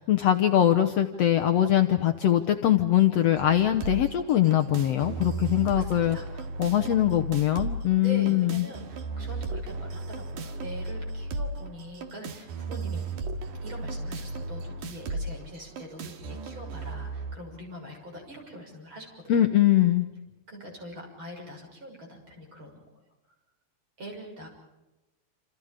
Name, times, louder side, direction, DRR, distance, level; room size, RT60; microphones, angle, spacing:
voice 1, 0.0-6.2 6.6-8.6 19.3-20.1, left 12 dB, 65° left, 6 dB, 1.8 m, -22 dB
sound 1, 3.4-17.4, right 3 dB, 80° right, 3.2 m, -35 dB
voice 2, 5.7-6.3 8.0-13.1 13.6-19.5 20.5-23.0 24.0-24.5, equal, 35° right, 1 dB, 7.1 m, -43 dB
28.0 x 28.0 x 5.0 m, 1.0 s
omnidirectional pair, 3.6 m